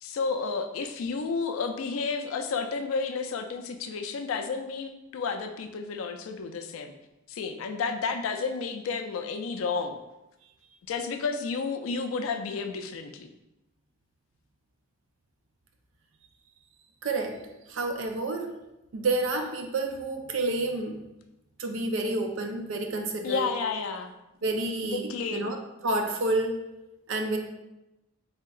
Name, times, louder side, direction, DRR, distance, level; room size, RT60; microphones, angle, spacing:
voice 1, 0.0-6.9 7.3-10.0 10.9-13.3 23.2-24.1 24.8-25.5, left 4 dB, 85° left, 7 dB, 0.3 m, -31 dB
voice 2, 17.0-17.4 17.7-18.5 18.9-21.0 21.6-23.5 24.4-25.6 25.8-26.6 27.1-27.4, right 2 dB, 70° right, 4 dB, 0.4 m, -29 dB
3.4 x 2.8 x 2.3 m, 0.94 s
head